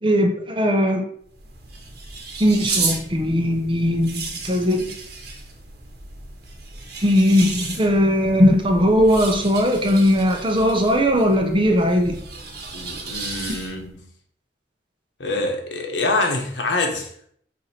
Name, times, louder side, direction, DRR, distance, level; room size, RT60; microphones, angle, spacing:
voice 1, 0.0-1.0 2.4-4.9 7.0-12.2, equal, 30° right, 0.8 m, -19 dB
sound 1, 1.2-13.9, right 4 dB, 60° right, 1.3 m, -33 dB
voice 2, 12.7-14.1 15.2-17.3, left 2 dB, 75° left, 1.2 m, -25 dB
7.8 x 2.8 x 4.3 m
head